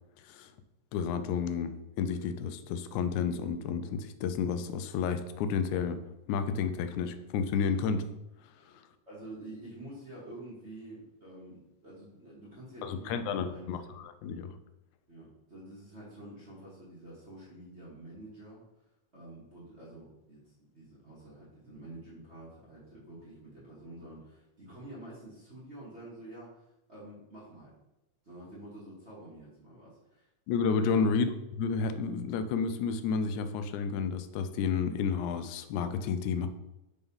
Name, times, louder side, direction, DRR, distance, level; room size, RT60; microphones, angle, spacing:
voice 1, 0.9-6.0 6.3-8.1 12.8-14.5 30.5-31.3 31.6-36.5, left 6 dB, 85° left, 9 dB, 2.0 m, -31 dB
voice 2, 9.0-14.1 15.1-18.6 19.1-27.7 28.2-30.3 30.9-31.1, right 1 dB, 30° right, -9 dB, 1.3 m, -48 dB
5.3 x 3.5 x 5.3 m, 0.93 s
omnidirectional pair, 3.4 m